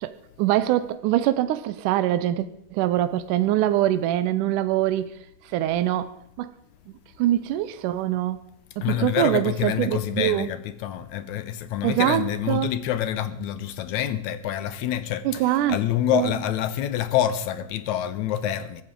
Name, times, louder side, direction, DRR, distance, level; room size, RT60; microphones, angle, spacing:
voice 1, 0.0-5.1 5.5-6.5 7.2-8.4 8.8-10.5 11.8-12.7 15.3-15.8 16.1-16.3, right 13 dB, 80° right, 2.2 m, -24 dB
voice 2, 8.8-18.8, left 11 dB, 75° left, 2.1 m, -27 dB
23.0 x 14.0 x 3.8 m
omnidirectional pair, 3.6 m